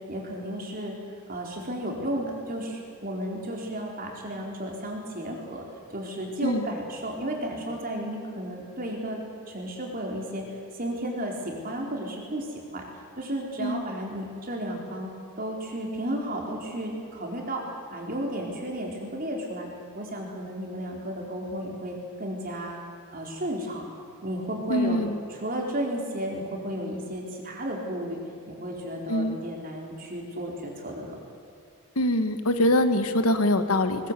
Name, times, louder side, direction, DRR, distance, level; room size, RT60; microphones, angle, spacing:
voice 1, 0.1-0.9 1.3-5.6 5.9-10.4 10.8-12.8 13.2-17.6 17.9-19.7 19.9-22.8 23.1-23.9 24.2-28.2 28.5-31.2, right 1 dB, 40° right, 0 dB, 4.2 m, -33 dB
voice 2, 24.7-25.2 29.1-29.4 31.9-34.1, left 1 dB, 80° left, 9 dB, 1.5 m, -24 dB
21.0 x 20.5 x 8.3 m, 2.4 s
head